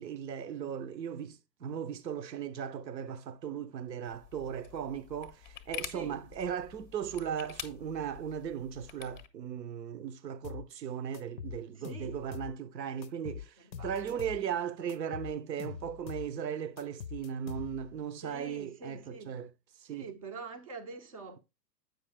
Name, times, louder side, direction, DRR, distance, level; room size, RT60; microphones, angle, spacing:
voice 1, 0.0-19.5 19.8-20.1, right 8 dB, 80° right, 0.6 m, -37 dB
sound 1, 4.0-9.3, left 10 dB, 30° left, 0.5 m, -47 dB
voice 2, 5.9-6.2 11.7-12.2 13.6-14.2 18.2-19.3 19.9-21.4, right 4 dB, 25° right, 0.3 m, -45 dB
sound 2, 10.4-10.7 11.1-12.6 13.0-14.4 14.9-16.3 16.8-18.0, left 8 dB, 90° left, 0.6 m, -43 dB
7.6 x 5.4 x 3.2 m
figure-of-eight pair, 110°, 50 cm